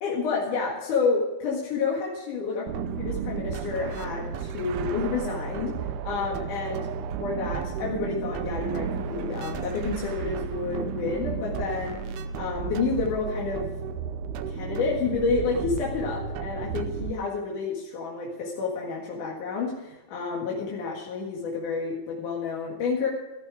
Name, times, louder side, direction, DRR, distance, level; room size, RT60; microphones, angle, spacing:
voice 1, 0.0-2.7 3.0-5.8 6.0-6.9 7.2-12.0 12.3-13.7 14.5-23.1, left 4 dB, 85° left, -3 dB, 3.4 m, -29 dB
sound 1, 2.7-17.1, right 6 dB, 90° right, 2.3 m, -33 dB
14.0 x 13.0 x 4.9 m, 1.1 s
omnidirectional pair, 3.5 m